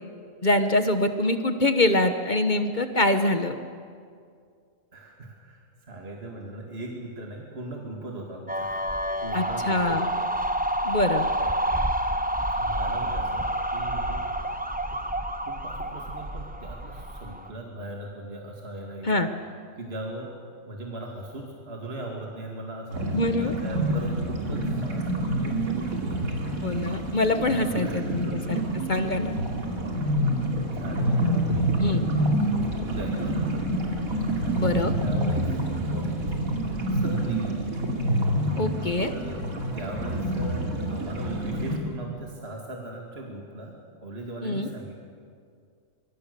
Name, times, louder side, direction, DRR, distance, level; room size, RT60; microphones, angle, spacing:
voice 1, 0.4-3.6 9.3-10.1 10.8-11.2 19.0-19.3 23.1-23.5 26.6-28.6 28.9-29.4 31.8-32.0 34.6-34.9 38.6-39.1 44.4-44.7, left 2 dB, 35° left, 8 dB, 1.2 m, -24 dB
voice 2, 4.9-8.9 9.2-10.3 12.6-14.3 14.9-15.0 15.5-19.1 19.8-20.4 20.6-26.9 27.6-28.4 30.6-31.9 32.5-34.0 34.3-36.5 36.9-37.8 39.1-39.4 39.7-44.9, right 1 dB, 45° right, 0 dB, 2.6 m, -39 dB
sound 1, 8.5-17.5, right 1 dB, 5° right, 1.0 m, -28 dB
sound 2, 22.9-41.8, right 1 dB, 80° right, 3.2 m, -27 dB
25.0 x 23.5 x 6.8 m, 2.2 s
omnidirectional pair, 1.4 m